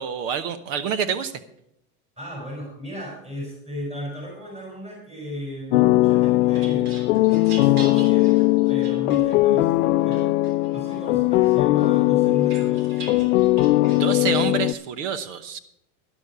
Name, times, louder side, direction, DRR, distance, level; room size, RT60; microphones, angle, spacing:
voice 1, 0.0-1.3 13.9-15.6, right 7 dB, 55° right, 12 dB, 1.1 m, -27 dB
voice 2, 2.2-7.0 7.4-8.4 8.7-10.4 10.7-13.0, equal, 15° right, -3 dB, 5.7 m, -36 dB
sound 1, 5.7-14.7, left 18 dB, 60° left, 0.6 m, -19 dB
sound 2, 6.1-9.7 10.1-11.0 11.4-14.5, right 3 dB, 75° right, 3.3 m, -43 dB
12.0 x 11.5 x 4.8 m, 0.74 s
supercardioid pair, 160°, 45 cm